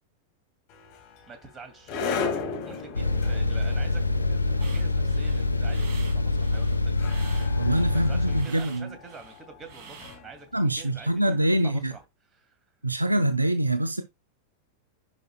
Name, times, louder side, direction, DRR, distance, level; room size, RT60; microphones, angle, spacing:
sound 1, 0.7-11.8, left 5 dB, 40° left, 2.5 m, -37 dB
voice 1, 1.3-1.9 2.6-7.1 7.9-11.3 11.6-12.0 12.3-12.6, right 5 dB, 20° right, 2.4 m, -47 dB
sound 2, 2.9-8.4, left 2 dB, 85° left, 0.7 m, -25 dB
sound 3, 4.6-10.4, right 6 dB, 40° right, 2.9 m, -48 dB
voice 2, 7.6-8.9 10.5-11.9 12.8-14.0, right 1 dB, 85° right, 0.7 m, -25 dB
10.5 x 5.3 x 2.3 m
figure-of-eight pair, 90°, 0 cm